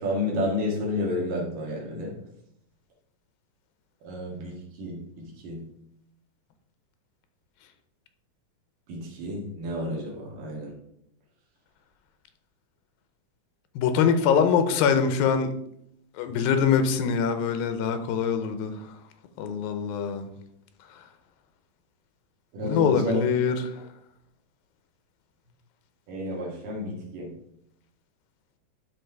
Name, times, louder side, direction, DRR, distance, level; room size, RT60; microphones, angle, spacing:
voice 1, 0.0-2.2 4.0-5.7 8.9-10.7 22.5-23.2 26.1-27.3, left 1 dB, 70° right, -1 dB, 3.4 m, -31 dB
voice 2, 13.8-15.5 16.2-18.7 19.4-20.3 22.6-23.6, left 7 dB, 85° left, 8 dB, 2.6 m, -23 dB
12.0 x 4.1 x 4.6 m, 0.75 s
omnidirectional pair, 4.1 m